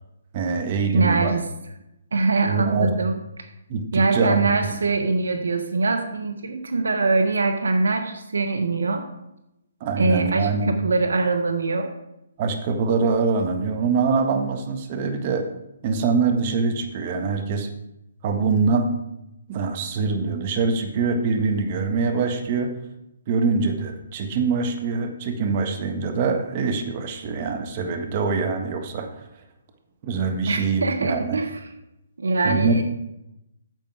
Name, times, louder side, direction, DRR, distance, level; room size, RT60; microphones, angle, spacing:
voice 1, 0.3-1.3 2.4-2.9 3.7-4.5 9.8-10.7 12.4-15.5 15.8-17.7 18.2-18.9 19.5-22.8 23.3-29.1 30.0-31.4 32.4-32.8, right 4 dB, 40° right, 5 dB, 1.4 m, -24 dB
voice 2, 0.9-1.4 2.1-3.1 3.9-9.1 10.0-11.9 30.5-31.6 32.2-32.8, right 3 dB, 80° right, 7 dB, 1.1 m, -23 dB
9.2 x 7.6 x 4.8 m, 0.87 s
hypercardioid pair, 140°, 0 cm